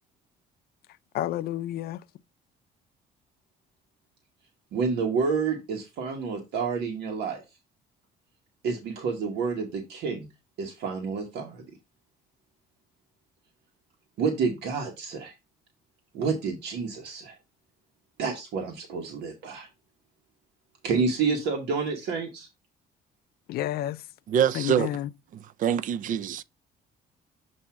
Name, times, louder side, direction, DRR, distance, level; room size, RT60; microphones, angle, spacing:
voice 1, 1.1-2.0 23.5-24.1 24.5-25.1, left 13 dB, 65° left, 0.5 m, -30 dB
voice 2, 4.7-7.4 8.6-10.3 10.6-11.6 14.2-15.3 16.1-17.4 18.2-19.7 20.8-22.5, right 5 dB, 75° right, 1.3 m, -29 dB
voice 3, 24.3-25.0 25.3-26.4, right 8 dB, 50° right, 0.5 m, -25 dB
7.2 x 2.7 x 5.6 m
cardioid pair, 110°, 17 cm